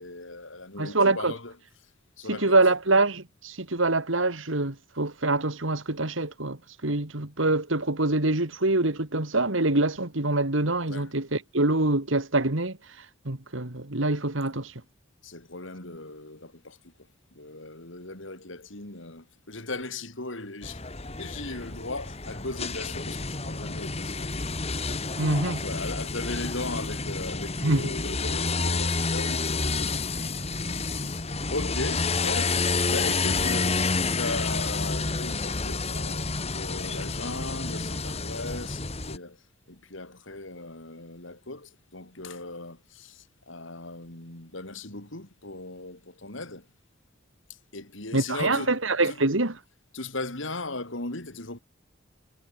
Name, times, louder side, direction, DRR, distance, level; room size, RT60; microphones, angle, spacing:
voice 1, 0.0-1.5 2.2-2.6 10.9-11.1 15.2-16.9 17.3-20.8 21.2-30.3 30.6-39.4 39.7-46.7 47.5-49.2 49.9-51.6, left 2 dB, 70° left, 4.1 m, -38 dB
voice 2, 0.8-1.3 2.3-14.7 25.2-25.6 27.6-27.9 48.1-49.5, right 2 dB, 75° right, 2.5 m, -25 dB
sound 1, 20.6-39.2, left 3 dB, 30° left, 2.1 m, -29 dB
head